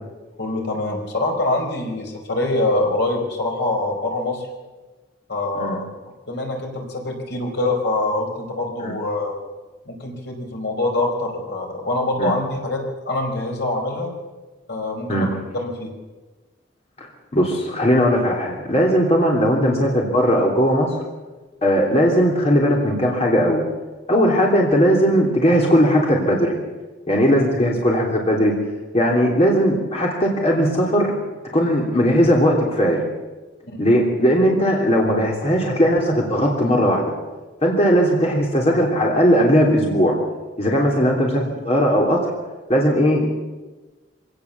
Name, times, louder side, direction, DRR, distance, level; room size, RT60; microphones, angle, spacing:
voice 1, 0.4-4.5 5.3-5.8 6.3-9.3 9.9-14.1 14.7-15.9 33.6-33.8, left 2 dB, 65° left, 2 dB, 4.7 m, -24 dB
voice 2, 17.3-20.9 21.6-23.6 24.1-26.5 27.1-28.6 28.9-31.1 31.5-33.0 33.8-37.1 37.6-40.2 40.6-42.3 42.7-43.3, equal, 35° left, -1 dB, 3.2 m, -18 dB
25.0 x 17.5 x 7.3 m, 1.2 s
head